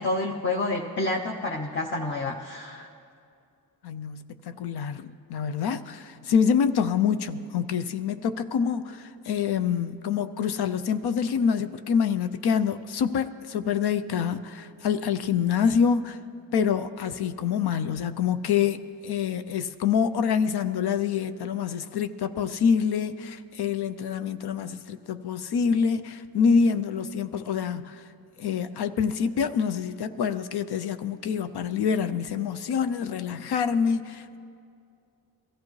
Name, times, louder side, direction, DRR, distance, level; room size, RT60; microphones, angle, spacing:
voice 1, 0.0-2.9, left 2 dB, 30° left, 0 dB, 0.8 m, -29 dB
voice 2, 3.8-16.2 16.5-28.0 28.4-34.4, left 7 dB, 75° left, 10 dB, 0.6 m, -26 dB
22.5 x 14.5 x 3.2 m, 2.4 s
wide cardioid pair, 105°, 39 cm